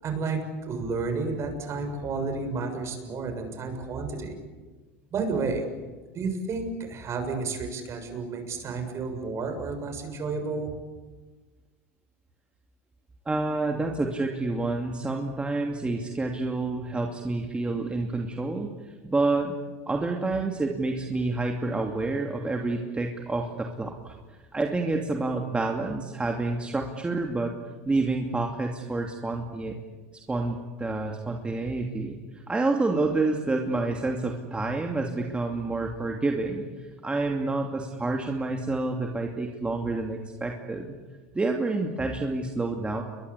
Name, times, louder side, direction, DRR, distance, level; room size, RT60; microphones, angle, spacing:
voice 1, 0.0-4.4 5.1-5.7 6.1-10.7, right 4 dB, 40° right, 6 dB, 7.0 m, -31 dB
voice 2, 13.3-18.7 19.0-19.6 19.9-24.1 24.5-27.6 27.9-29.8 30.3-40.9 41.3-43.0, right 3 dB, 15° right, 2 dB, 2.8 m, -28 dB
29.5 x 22.5 x 8.5 m, 1.3 s
hypercardioid pair, 95°, 8 cm